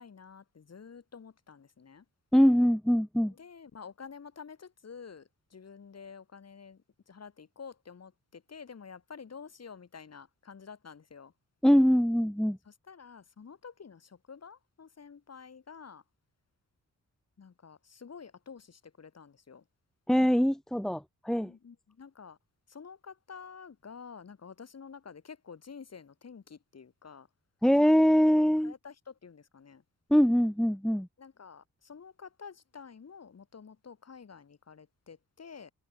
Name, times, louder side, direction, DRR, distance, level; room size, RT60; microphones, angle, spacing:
voice 1, 0.0-2.0 3.3-11.3 12.6-16.0 17.4-19.6 21.4-22.4 22.7-27.3 28.3-29.8 31.2-35.7, left 6 dB, 50° left, 3.4 m, -49 dB
voice 2, 2.3-3.3 11.6-12.6 20.1-21.5 27.6-28.7 30.1-31.1, equal, ahead, 1.0 m, -23 dB
cardioid pair, 95°, 33 cm